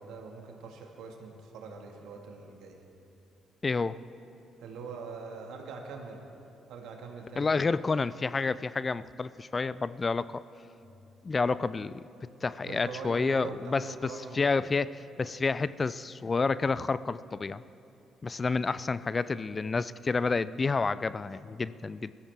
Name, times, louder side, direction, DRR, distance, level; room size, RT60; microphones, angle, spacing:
voice 1, 0.0-2.8 4.6-6.3 6.7-7.7 12.6-14.6, right 4 dB, 70° right, 2 dB, 1.8 m, -43 dB
voice 2, 3.6-4.0 7.4-10.4 11.2-12.1 12.4-14.9 15.2-17.6 18.2-22.1, left 4 dB, 35° left, 17 dB, 0.4 m, -29 dB
21.5 x 13.5 x 3.6 m, 2.7 s
hypercardioid pair, 50°, 0 cm